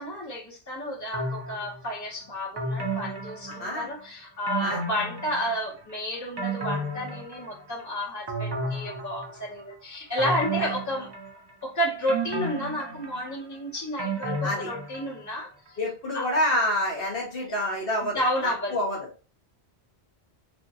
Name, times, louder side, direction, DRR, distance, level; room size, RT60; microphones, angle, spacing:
voice 1, 0.0-11.1 11.6-15.8 16.1-16.3 17.5-17.6 18.0-18.8, equal, 15° left, -6 dB, 1.2 m, -31 dB
sound 1, 1.1-1.9 2.6-4.0 4.5-5.8 6.1-7.8 8.3-9.6 10.2-11.6 12.1-15.3 15.7-15.8, right 2 dB, 30° right, 0.6 m, -33 dB
voice 2, 15.8-19.0, left 1 dB, 65° left, -2 dB, 1.1 m, -27 dB
2.9 x 2.7 x 2.7 m, 0.36 s
omnidirectional pair, 1.1 m